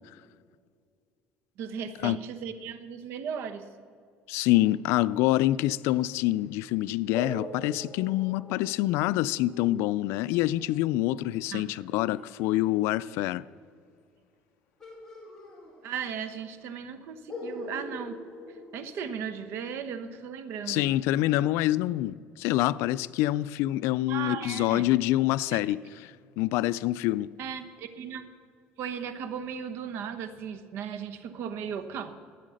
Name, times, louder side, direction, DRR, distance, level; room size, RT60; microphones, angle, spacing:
voice 1, 1.6-3.7 11.5-11.7 15.8-18.2 18.5-20.9 24.1-24.9 25.5-25.6 27.4-28.2 28.8-32.1, right 7 dB, 65° right, 1.0 m, -36 dB
voice 2, 4.3-13.4 20.7-25.8 26.4-27.3, left 16 dB, 85° left, 0.3 m, -26 dB
sound 1, 7.1-12.6 14.8-16.3 16.5-16.6 17.3-19.5, left 2 dB, 10° left, 2.8 m, -43 dB
12.5 x 9.1 x 6.4 m
cardioid pair, 135°, 4 cm